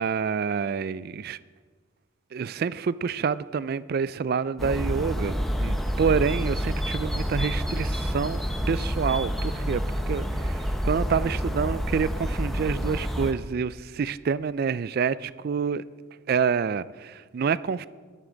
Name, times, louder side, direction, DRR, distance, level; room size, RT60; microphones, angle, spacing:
voice 1, 0.0-1.4 2.3-15.8 16.3-17.9, right 6 dB, 45° right, 18 dB, 0.3 m, -27 dB
sound 1, 4.6-13.3, equal, ahead, 0.8 m, -28 dB
13.0 x 12.5 x 3.9 m, 1.5 s
head